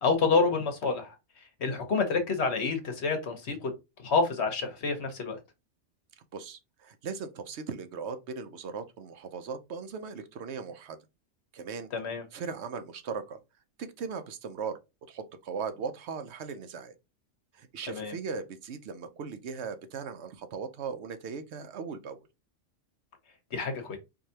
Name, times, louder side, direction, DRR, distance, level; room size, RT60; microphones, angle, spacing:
voice 1, 0.0-3.7 4.0-5.4 11.9-12.2 17.9-18.2 23.5-24.0, left 4 dB, 60° left, 1.2 m, -28 dB
voice 2, 6.3-11.0 11.5-11.9 12.3-13.4 13.8-14.8 15.1-17.0 17.5-22.2, right 5 dB, 65° right, 0.9 m, -38 dB
4.7 x 2.7 x 2.8 m
omnidirectional pair, 1.3 m